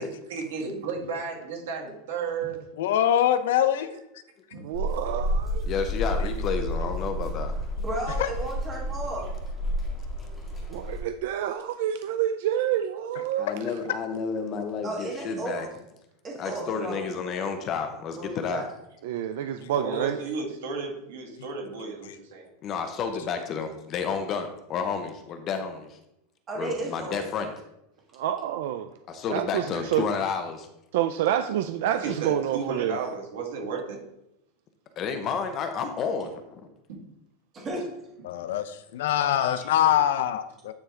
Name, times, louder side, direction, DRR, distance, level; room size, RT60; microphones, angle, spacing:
voice 1, 0.0-2.6 4.5-4.6 19.8-22.5 31.9-34.0 36.9-37.0, right 4 dB, 90° right, 0 dB, 1.8 m, -33 dB
voice 2, 2.8-4.0 8.2-8.3 38.2-40.7, left 10 dB, 75° left, 11 dB, 0.5 m, -24 dB
voice 3, 4.6-5.7 10.7-13.5 19.0-20.2 28.1-28.9 29.3-30.1 30.9-33.0, right 11 dB, 60° right, 9 dB, 0.3 m, -28 dB
sound 1, 4.7-11.0, equal, ahead, 1.8 m, -30 dB
voice 4, 5.7-7.5 13.4-15.7 16.4-18.6 22.6-26.0 26.6-27.5 29.1-30.7 35.0-36.7, left 6 dB, 25° left, 7 dB, 0.6 m, -31 dB
voice 5, 7.8-9.2 10.2-10.3 14.8-15.7 16.2-17.0 18.1-18.7 26.5-27.2 37.5-37.9 39.1-39.7, right 2 dB, 20° right, -2 dB, 1.5 m, -34 dB
9.4 x 3.4 x 3.7 m, 0.84 s
supercardioid pair, 175°, 0 cm